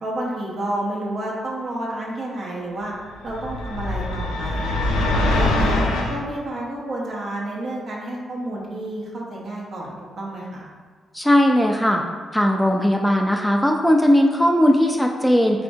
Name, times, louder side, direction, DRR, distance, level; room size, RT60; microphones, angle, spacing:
voice 1, 0.0-2.9 3.2-4.9 5.3-10.6, right 1 dB, 60° right, -4 dB, 0.8 m, -30 dB
sound 1, 3.3-6.2, left 1 dB, 80° left, 0.3 m, -22 dB
voice 2, 11.1-12.0 12.3-15.6, equal, 5° left, 2 dB, 0.3 m, -18 dB
4.1 x 2.5 x 2.3 m, 1.5 s
hypercardioid pair, 40°, 0 cm